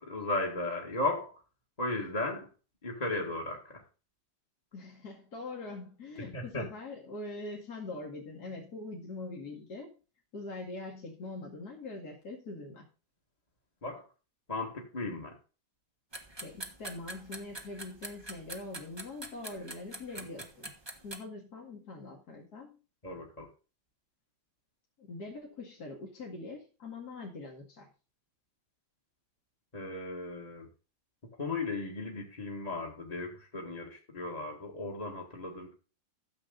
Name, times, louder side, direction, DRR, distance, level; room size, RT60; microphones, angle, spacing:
voice 1, 0.0-1.3 1.8-2.5 2.8-3.8 6.3-6.7 13.8-14.0 14.5-15.4 23.0-23.5 29.7-30.7 31.4-35.7, left 2 dB, 20° left, 1.9 m, -35 dB
voice 2, 4.7-10.0 10.3-12.9 16.4-20.7 21.0-22.8 25.0-27.9, left 2 dB, 55° left, 2.6 m, -43 dB
sound 1, 16.1-21.2, right 1 dB, 15° right, 1.2 m, -44 dB
13.5 x 7.5 x 3.9 m
omnidirectional pair, 2.1 m